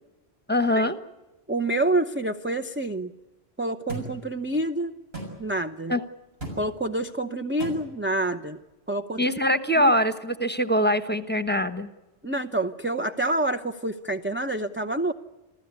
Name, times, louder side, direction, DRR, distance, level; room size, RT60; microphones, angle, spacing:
voice 1, 0.5-1.0 5.9-6.0 9.2-11.9, equal, 10° left, 11 dB, 1.1 m, -23 dB
voice 2, 1.5-3.1 3.6-4.9 5.4-5.9 6.6-8.6 8.9-9.9 12.2-15.1, right 1 dB, 15° right, 7 dB, 0.6 m, -27 dB
sound 1, 3.9-4.1 5.1-5.3 6.4-6.6 7.6-7.8, right 3 dB, 70° right, 7.1 m, -34 dB
27.5 x 15.5 x 9.5 m, 1.1 s
omnidirectional pair, 1.1 m